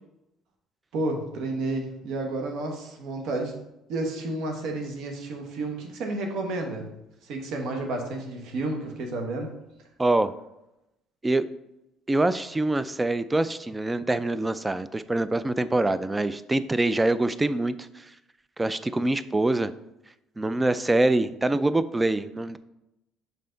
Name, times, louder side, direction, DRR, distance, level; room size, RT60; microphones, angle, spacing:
voice 1, 0.9-3.6 3.9-6.9 7.2-9.5, right 2 dB, 70° right, 3 dB, 1.2 m, -31 dB
voice 2, 10.0-10.3 11.2-11.4 12.1-18.0 18.6-19.7 20.4-22.6, right 2 dB, 15° right, 14 dB, 0.3 m, -25 dB
5.6 x 5.1 x 3.9 m, 0.90 s
cardioid pair, 115°, 0 cm